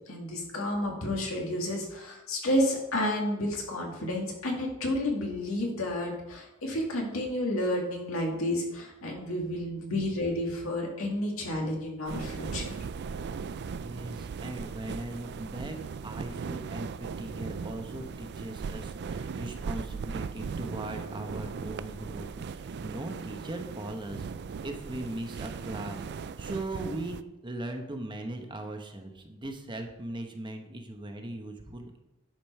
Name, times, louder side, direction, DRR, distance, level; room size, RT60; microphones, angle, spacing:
voice 1, 0.1-12.8, left 1 dB, 70° left, 0 dB, 2.2 m, -31 dB
sound 1, 12.1-27.2, right 5 dB, 50° right, 0.4 m, -38 dB
voice 2, 13.8-15.8 16.0-24.3 24.6-26.0 26.4-32.0, right 1 dB, 20° right, 4 dB, 0.9 m, -39 dB
10.5 x 5.2 x 5.5 m, 0.95 s
head